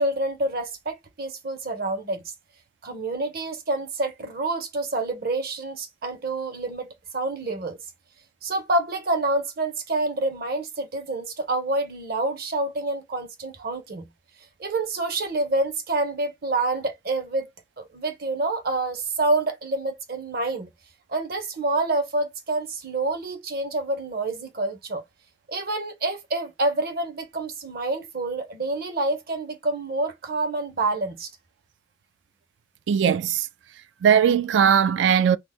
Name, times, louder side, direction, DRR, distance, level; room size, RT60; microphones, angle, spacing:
voice 1, 0.0-2.2 2.8-7.8 8.4-14.0 14.6-17.5 17.8-20.7 21.1-25.0 25.5-31.3, right 2 dB, 55° right, 0.8 m, -27 dB
voice 2, 32.9-33.5 34.0-35.4, right 8 dB, 80° right, 0.3 m, -19 dB
2.8 x 2.0 x 3.3 m
head